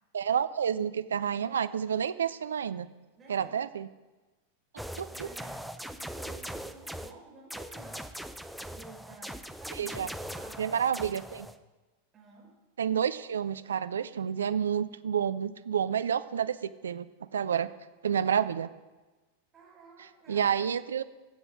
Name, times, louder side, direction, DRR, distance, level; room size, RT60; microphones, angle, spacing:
voice 1, 0.1-2.9 3.3-3.9 5.0-5.3 9.7-10.1 10.6-11.5 12.8-17.1 17.3-17.7 18.0-18.7 20.3-21.0, right 8 dB, 65° right, 13 dB, 0.5 m, -29 dB
voice 2, 3.2-3.7 5.1-8.1 8.7-11.3 12.1-12.5 19.5-20.5, right 3 dB, 20° right, -4 dB, 5.0 m, -52 dB
sound 1, 4.8-7.1 7.5-11.6, equal, ahead, 0.6 m, -41 dB
22.5 x 8.1 x 3.7 m, 1.2 s
figure-of-eight pair, 90°, 0 cm